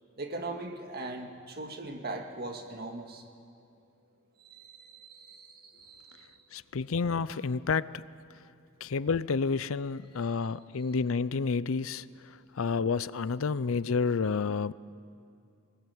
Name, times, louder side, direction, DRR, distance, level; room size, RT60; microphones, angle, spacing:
voice 1, 0.2-3.3 4.4-6.3, right 2 dB, 50° right, 4 dB, 2.1 m, -40 dB
voice 2, 6.5-8.0 8.8-14.7, left 5 dB, 80° left, 17 dB, 0.6 m, -30 dB
23.5 x 20.0 x 9.5 m, 2.5 s
head